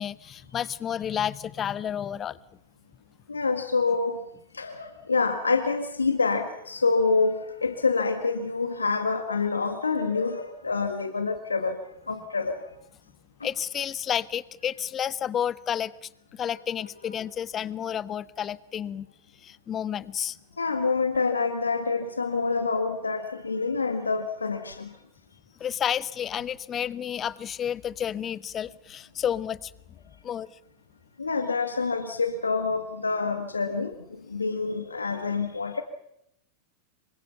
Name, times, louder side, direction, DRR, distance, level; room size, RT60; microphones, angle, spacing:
voice 1, 0.0-2.4 13.4-19.1 19.4-20.4 25.6-29.7 30.2-30.5, left 9 dB, 25° left, 20 dB, 0.8 m, -31 dB
voice 2, 3.3-4.2 4.5-11.8 12.1-12.6 20.6-24.9 31.2-33.9 34.3-35.8, left 4 dB, 75° left, 8 dB, 1.6 m, -27 dB
27.0 x 24.5 x 5.7 m, 0.79 s
figure-of-eight pair, 90°, 0 cm